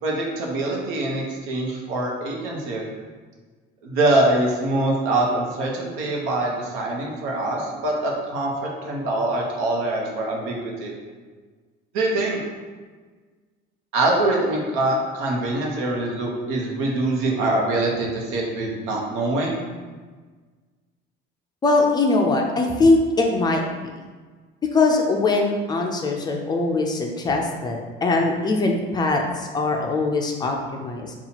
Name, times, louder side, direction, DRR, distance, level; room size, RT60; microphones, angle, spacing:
voice 1, 0.0-2.8 3.8-8.5 8.8-10.9 11.9-12.4 13.9-19.6, right 2 dB, 90° right, -1 dB, 0.9 m, -24 dB
voice 2, 21.6-23.6 24.7-31.1, left 3 dB, 20° left, 1 dB, 0.3 m, -21 dB
5.5 x 2.4 x 2.8 m, 1.4 s
cardioid pair, 155°, 20 cm